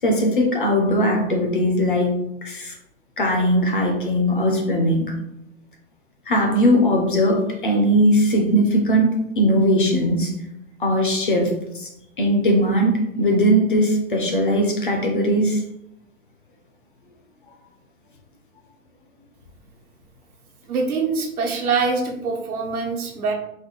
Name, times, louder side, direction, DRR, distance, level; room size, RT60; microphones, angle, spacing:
voice 1, 0.0-2.2 2.4-2.7 3.2-5.1 6.3-10.3 10.8-11.9 12.2-15.6, equal, 40° left, 2 dB, 0.5 m, -19 dB
voice 2, 20.7-23.3, right 4 dB, 90° right, 1 dB, 1.1 m, -24 dB
4.0 x 2.2 x 3.0 m, 0.82 s
hypercardioid pair, 170°, 43 cm